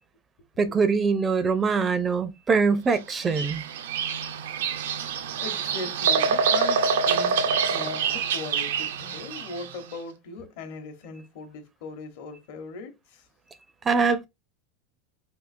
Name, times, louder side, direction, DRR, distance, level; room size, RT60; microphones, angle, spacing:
voice 1, 0.6-3.6 13.9-14.3, right 5 dB, 20° right, 0.4 m, -23 dB
Bird vocalization bird call bird song, 3.1-9.7, right 6 dB, 85° right, 0.5 m, -26 dB
voice 2, 5.0-13.2, left 4 dB, 65° left, 0.9 m, -39 dB
3.6 x 2.6 x 2.4 m
supercardioid pair, 140°, 0 cm